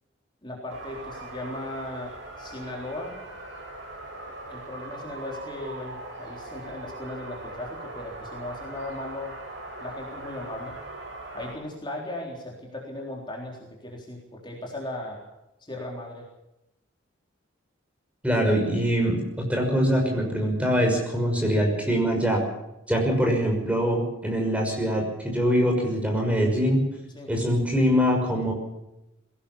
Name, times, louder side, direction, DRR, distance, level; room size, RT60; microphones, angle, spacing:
voice 1, 0.4-3.2 4.5-9.3 9.8-10.8 11.3-15.2 15.6-16.3 27.1-27.3, left 1 dB, 25° left, -1 dB, 3.8 m, -37 dB
sound 1, 0.7-11.5, right 2 dB, 60° right, 7.0 m, -40 dB
voice 2, 18.2-22.4 22.9-26.8 27.3-28.5, equal, 5° right, 1 dB, 6.0 m, -23 dB
21.5 x 17.0 x 7.1 m, 0.92 s
head